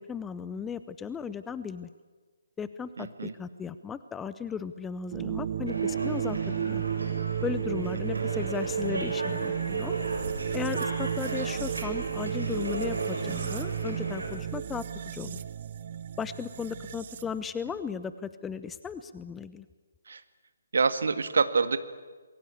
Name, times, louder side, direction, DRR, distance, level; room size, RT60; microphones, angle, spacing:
voice 1, 0.0-1.9 2.6-6.8 7.4-9.9 10.5-15.4 16.2-19.7, left 6 dB, 10° left, 14 dB, 0.7 m, -36 dB
voice 2, 3.0-3.3 8.1-8.3 20.1-20.2 20.7-21.8, right 5 dB, 55° right, 11 dB, 1.8 m, -26 dB
sound 1, 5.1-17.4, right 8 dB, 35° right, 0.8 m, -33 dB
sound 2, 5.7-14.3, right 1 dB, 70° right, 7.2 m, -37 dB
27.5 x 22.0 x 8.5 m, 1.4 s
figure-of-eight pair, 140°, 0 cm